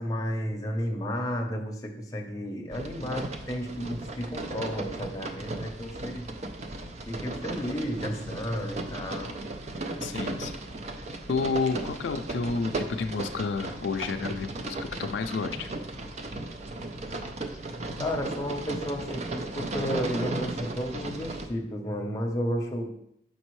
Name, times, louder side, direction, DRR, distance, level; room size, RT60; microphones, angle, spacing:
voice 1, 0.0-6.3 7.1-9.3 18.0-22.9, equal, 20° left, 0 dB, 0.7 m, -32 dB
sound 1, 2.7-21.5, right 2 dB, 40° right, 0.5 m, -36 dB
voice 2, 10.0-10.7 11.3-15.7, left 4 dB, 80° left, 7 dB, 0.4 m, -30 dB
6.0 x 5.2 x 3.1 m, 0.75 s
head